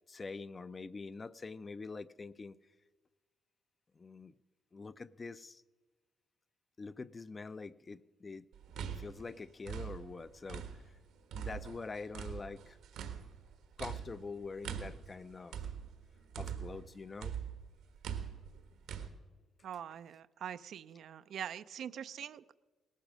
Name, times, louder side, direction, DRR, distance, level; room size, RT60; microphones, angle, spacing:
voice 1, 0.1-2.5 4.0-4.3 4.7-5.6 6.8-8.5 8.8-10.7 11.3-12.8 13.8-15.6 16.4-17.3, left 4 dB, 30° left, 0.4 m, -45 dB
sound 1, 8.5-11.0 11.3-16.9 17.2-19.1, right 8 dB, 85° right, 1.5 m, -43 dB
voice 2, 19.6-22.6, right 9 dB, 70° right, 0.4 m, -44 dB
18.0 x 12.0 x 6.2 m
cardioid pair, 90°, 0 cm